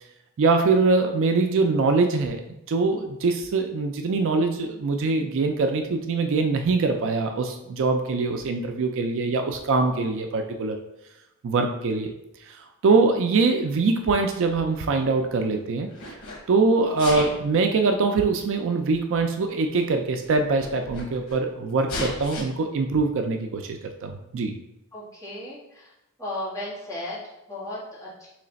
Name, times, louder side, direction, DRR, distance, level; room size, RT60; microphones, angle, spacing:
voice 1, 0.4-2.4 2.7-10.8 11.4-12.1 12.5-15.9 16.5-24.5, right 3 dB, 60° right, 5 dB, 0.4 m, -23 dB
Sneeze, 14.4-15.4 15.9-16.4 16.9-17.5 18.5-18.6 19.4-19.5 19.7-19.8 20.2-21.4 21.9-22.4, left 2 dB, 90° left, 1.1 m, -35 dB
voice 2, 24.9-25.9 26.2-28.3, left 1 dB, 15° left, -9 dB, 1.5 m, -35 dB
3.2 x 3.1 x 3.9 m, 0.89 s
head